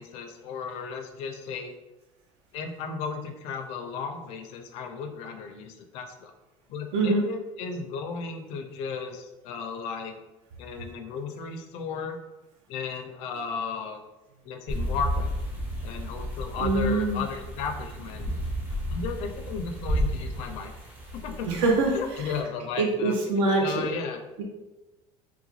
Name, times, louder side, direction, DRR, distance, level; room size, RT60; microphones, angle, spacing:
voice 1, 0.0-1.7 2.5-6.3 6.7-10.2 10.6-12.2 12.7-14.0 14.4-15.3 15.8-18.3 18.9-20.7 21.1-21.5 21.9-24.2, left 5 dB, 60° left, 5 dB, 0.5 m, -35 dB
voice 2, 6.9-7.2 16.6-17.2 21.5-21.9 22.8-23.9, right 2 dB, 75° right, 0 dB, 0.7 m, -24 dB
sound 1, 14.7-22.4, equal, 15° right, 0.5 m, -32 dB
3.8 x 2.1 x 3.0 m, 1.1 s
cardioid pair, 155°, 12 cm